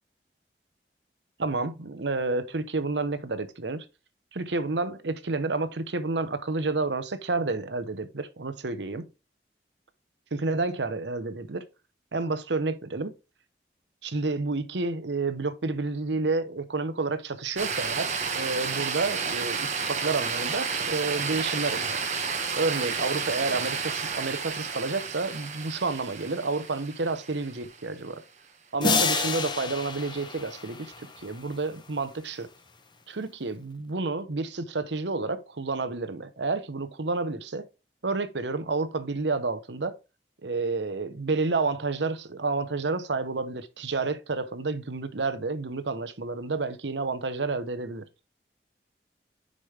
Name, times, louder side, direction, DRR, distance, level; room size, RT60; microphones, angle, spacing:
voice 1, 1.4-3.8 4.3-9.0 10.3-11.7 12.1-13.1 14.0-22.0 22.5-28.2 28.7-30.9 31.2-32.5 33.1-37.7 38.0-40.0 40.4-48.1, right 3 dB, 90° right, 0.9 m, -30 dB
sound 1, 17.6-27.8, right 5 dB, 40° right, 1.2 m, -31 dB
sound 2, 28.8-31.3, left 4 dB, 25° left, 0.9 m, -28 dB
10.0 x 5.3 x 3.4 m
head